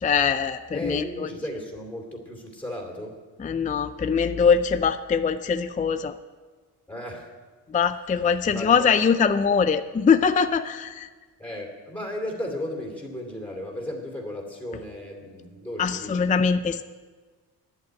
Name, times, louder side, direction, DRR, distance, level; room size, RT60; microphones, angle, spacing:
voice 1, 0.0-1.3 3.4-6.1 7.7-11.1 15.8-16.8, left 6 dB, 20° left, 10 dB, 0.4 m, -22 dB
voice 2, 0.7-3.2 6.9-7.3 8.4-8.9 11.4-16.3, left 1 dB, 5° left, 1 dB, 2.6 m, -35 dB
10.5 x 8.2 x 9.2 m, 1.4 s
cardioid pair, 125°, 42 cm